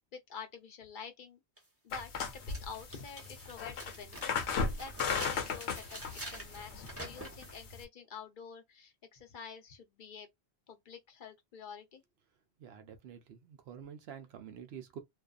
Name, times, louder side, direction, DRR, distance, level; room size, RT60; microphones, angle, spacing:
voice 1, 0.1-1.4 1.8-4.5 4.8-6.0 6.3-10.3 10.7-12.0, left 6 dB, 55° left, 0.8 m, -48 dB
sound 1, 1.6-1.7 2.2-7.6, right 1 dB, 15° right, 0.8 m, -47 dB
sound 2, 1.9-7.8, left 5 dB, 80° left, 0.9 m, -37 dB
voice 2, 12.6-15.0, right 8 dB, 75° right, 0.8 m, -48 dB
2.5 x 2.3 x 2.3 m
omnidirectional pair, 1.1 m